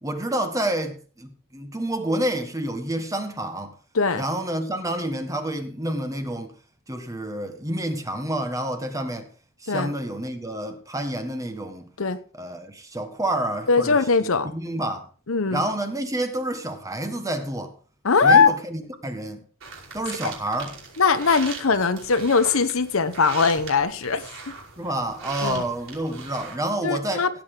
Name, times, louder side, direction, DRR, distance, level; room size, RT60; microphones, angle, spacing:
voice 1, 0.0-3.7 4.1-6.5 6.9-9.3 9.6-11.9 12.3-15.1 15.5-17.7 18.2-19.4 19.9-20.8 24.8-27.2, right 1 dB, 15° right, 1.5 m, -29 dB
voice 2, 13.7-14.5 15.3-15.6 18.0-18.5 20.2-20.3 21.0-24.2 25.4-25.6 26.8-27.3, left 5 dB, 65° left, 0.9 m, -20 dB
sound 1, 19.6-26.6, right 4 dB, 60° right, 5.5 m, -40 dB
16.5 x 8.7 x 3.8 m
head